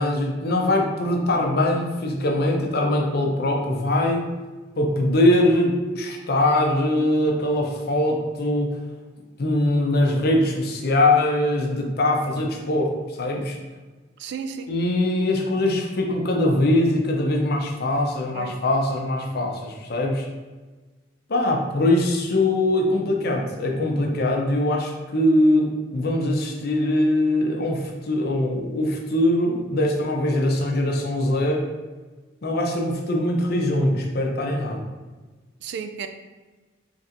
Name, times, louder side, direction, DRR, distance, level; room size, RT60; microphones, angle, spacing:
voice 1, 0.0-4.3 4.8-8.8 9.4-13.6 14.7-20.3 21.3-31.7 32.4-34.8, left 1 dB, 55° left, 1 dB, 0.6 m, -22 dB
voice 2, 14.2-14.7 18.3-18.6 35.6-36.1, right 6 dB, 60° right, 8 dB, 0.3 m, -33 dB
4.1 x 3.3 x 2.5 m, 1.3 s
head